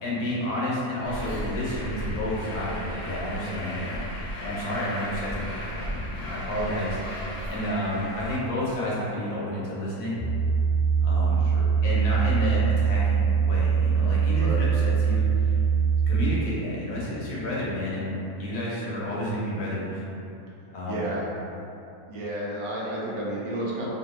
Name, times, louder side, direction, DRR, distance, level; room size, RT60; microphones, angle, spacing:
voice 1, 0.0-10.3 11.0-11.5 11.8-15.6 16.1-20.0 20.7-21.0, left 1 dB, 85° left, -7 dB, 1.4 m, -30 dB
Truck, 1.0-8.4, equal, 55° left, 0.5 m, -35 dB
sound 1, 10.2-16.2, right 6 dB, 55° right, 0.7 m, -22 dB
voice 2, 20.9-21.3 22.1-23.9, right 1 dB, 75° right, -5 dB, 1.1 m, -31 dB
3.2 x 2.6 x 2.9 m, 2.7 s
omnidirectional pair, 1.6 m